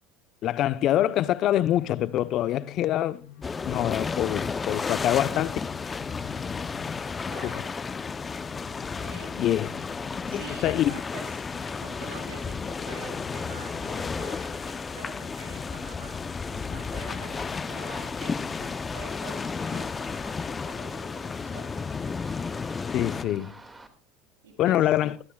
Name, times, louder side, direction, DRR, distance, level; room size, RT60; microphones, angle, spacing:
voice 1, 0.4-3.2 3.6-5.6 7.4-7.5 9.4-9.7 10.3-10.9 22.9-23.6 24.6-25.2, left 12 dB, 55° left, 0.9 m, -25 dB
sound 1, 1.0-17.9, left 12 dB, 75° left, 3.5 m, -51 dB
sound 2, 3.4-23.2, left 5 dB, 25° left, 0.8 m, -33 dB
voice 2, 7.3-7.8 9.0-9.8 10.2-16.2 16.5-22.0 24.4-24.9, right 4 dB, 85° right, 7.3 m, -46 dB
Run, 13.9-23.9, right 2 dB, 15° right, 2.3 m, -51 dB
24.0 x 13.0 x 2.4 m
supercardioid pair, 95°, 0 cm